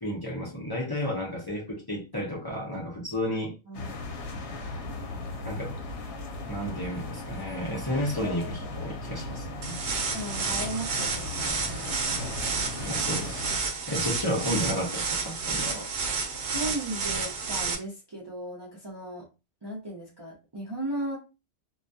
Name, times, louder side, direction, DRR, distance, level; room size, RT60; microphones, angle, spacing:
voice 1, 0.0-3.5 5.4-5.8 6.5-9.8 12.9-15.9, equal, 25° left, 0.6 m, -32 dB
sound 1, 3.7-13.6, left 2 dB, 85° left, 0.9 m, -37 dB
sound 2, 9.6-17.7, right 4 dB, 70° right, 0.8 m, -30 dB
voice 2, 10.1-12.2 16.5-19.3 19.6-21.2, right 1 dB, 30° right, 0.5 m, -36 dB
2.2 x 2.1 x 2.6 m
omnidirectional pair, 1.1 m